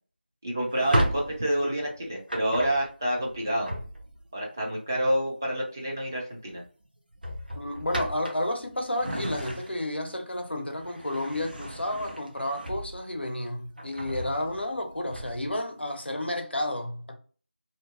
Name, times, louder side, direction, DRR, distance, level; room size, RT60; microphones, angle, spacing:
voice 1, 0.4-3.7 4.3-6.6, right 1 dB, 20° right, 0.4 m, -28 dB
Drawer open or close, 0.7-4.4 5.8-6.1 6.5-6.7 7.1-10.0 10.5-13.2 13.6-15.6, equal, 55° right, 0.8 m, -34 dB
voice 2, 7.6-17.2, left 1 dB, 85° left, 0.7 m, -31 dB
2.8 x 2.5 x 2.4 m
figure-of-eight pair, 170°, 6 cm